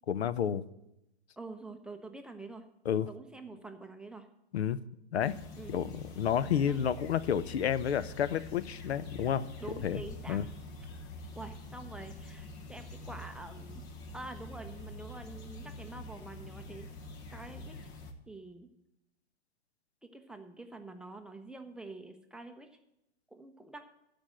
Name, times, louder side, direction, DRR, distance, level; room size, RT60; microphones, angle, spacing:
voice 1, 0.1-0.6 2.9-3.1 4.5-4.8 5.1-5.4 5.7-9.4 9.8-10.0 10.3-10.4, left 9 dB, 75° left, 16 dB, 0.7 m, -30 dB
voice 2, 1.4-2.6 3.1-4.3 5.6-5.8 6.4-6.9 9.6-10.4 11.4-13.8 14.1-16.9 17.3-17.8 18.3-18.7 20.0-22.7 23.3-23.8, right 2 dB, 5° right, 4 dB, 0.7 m, -46 dB
sound 1, 5.2-18.1, left 2 dB, 30° left, 1.3 m, -46 dB
13.0 x 5.2 x 7.8 m, 0.85 s
hypercardioid pair, 125°, 33 cm